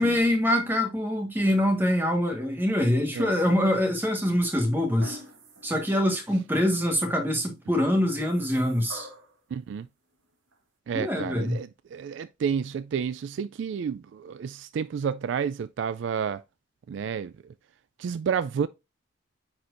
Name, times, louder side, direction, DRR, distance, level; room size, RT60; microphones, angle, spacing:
voice 1, 0.0-5.2 5.6-9.1 10.9-11.6, left 1 dB, 10° right, 1.4 m, -24 dB
sound 1, 3.4-4.0 5.0-5.8 6.3-6.4 8.0-9.4 10.5-10.6, right 1 dB, 85° right, 2.0 m, -45 dB
voice 2, 9.5-9.9 10.9-16.4 16.9-17.3 18.0-18.7, right 7 dB, 65° right, 0.3 m, -30 dB
9.5 x 4.3 x 2.5 m
head